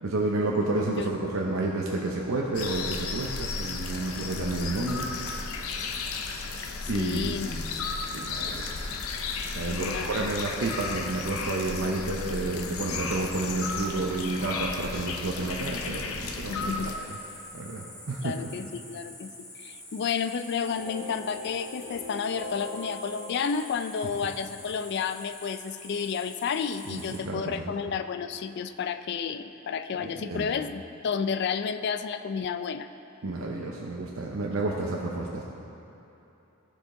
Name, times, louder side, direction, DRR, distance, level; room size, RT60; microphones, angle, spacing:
voice 1, 0.0-5.1 6.9-7.7 8.1-8.7 9.6-16.9 17.5-18.3 26.9-27.5 30.0-30.5 33.2-35.4, right 2 dB, 70° right, -2 dB, 0.7 m, -30 dB
sound 1, 2.5-16.9, left 4 dB, 85° left, 0.6 m, -34 dB
voice 2, 6.9-7.5 9.7-10.3 16.5-16.9 18.2-19.3 19.6-32.9, left 6 dB, 50° left, 10 dB, 0.3 m, -31 dB
Cricket, 16.8-27.2, left 1 dB, 30° left, 1.7 m, -46 dB
sound 2, 20.4-24.7, left 1 dB, 40° right, 0.8 m, -42 dB
14.0 x 5.1 x 3.7 m, 2.9 s
head